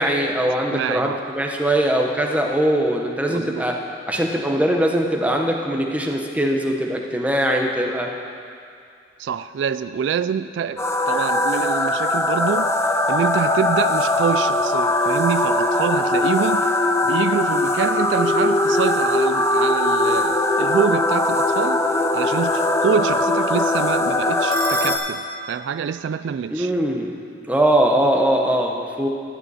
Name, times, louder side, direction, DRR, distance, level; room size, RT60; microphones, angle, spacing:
voice 1, 0.0-3.8 4.1-8.1 26.5-27.1 27.5-29.1, right 1 dB, 10° right, 1 dB, 1.0 m, -21 dB
voice 2, 0.7-1.2 3.3-3.7 9.2-12.7 13.1-16.7 17.0-26.7, right 7 dB, 75° right, 13 dB, 0.3 m, -26 dB
sound 1, 10.8-25.0, left 2 dB, 15° left, 0.5 m, -20 dB
sound 2, 23.3-25.0, right 1 dB, 50° right, 2.2 m, -42 dB
14.0 x 11.0 x 4.2 m, 2.4 s
head